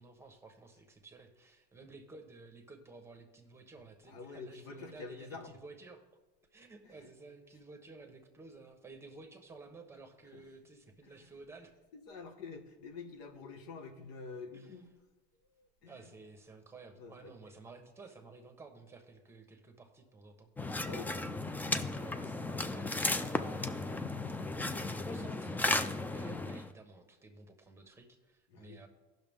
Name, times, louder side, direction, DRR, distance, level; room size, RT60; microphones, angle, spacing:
voice 1, 0.0-6.0 6.5-11.7 14.5-14.7 15.9-20.5 21.9-28.9, right 3 dB, 10° right, 5 dB, 1.2 m, -53 dB
voice 2, 4.1-5.5 6.8-6.9 10.3-10.4 11.0-11.3 11.9-14.9 15.5-16.1 16.9-17.3 20.8-21.1 28.5-28.8, left 4 dB, 80° left, 5 dB, 1.4 m, -47 dB
sound 1, 20.6-26.7, left 2 dB, 10° left, 0.4 m, -35 dB
15.5 x 6.1 x 3.6 m, 1.1 s
cardioid pair, 130°, 20 cm